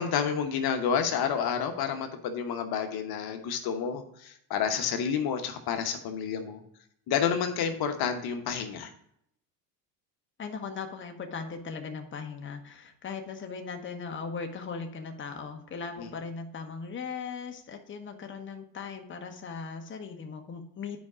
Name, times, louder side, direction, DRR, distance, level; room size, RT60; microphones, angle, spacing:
voice 1, 0.0-6.6 7.1-8.9 16.0-16.1, left 7 dB, 50° left, 6 dB, 1.1 m, -29 dB
voice 2, 10.4-21.0, left 5 dB, 25° left, 4 dB, 1.1 m, -38 dB
9.5 x 5.0 x 4.9 m, 0.72 s
hypercardioid pair, 80°, 49 cm